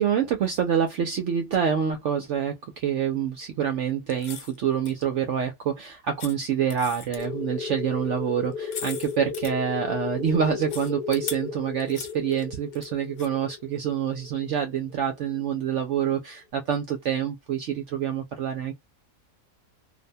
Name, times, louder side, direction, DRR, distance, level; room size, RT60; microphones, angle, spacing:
voice 1, 0.0-18.7, right 8 dB, 70° right, 0.7 m, -26 dB
sound 1, 4.1-4.6 4.9-5.0 6.2-6.3 6.7-7.3 8.5-9.5 10.7-11.4 11.8-12.9 13.2-13.3, left 7 dB, 60° left, 0.9 m, -38 dB
sound 2, 7.2-15.5, left 6 dB, 85° left, 1.2 m, -35 dB
2.6 x 2.1 x 2.5 m
omnidirectional pair, 1.7 m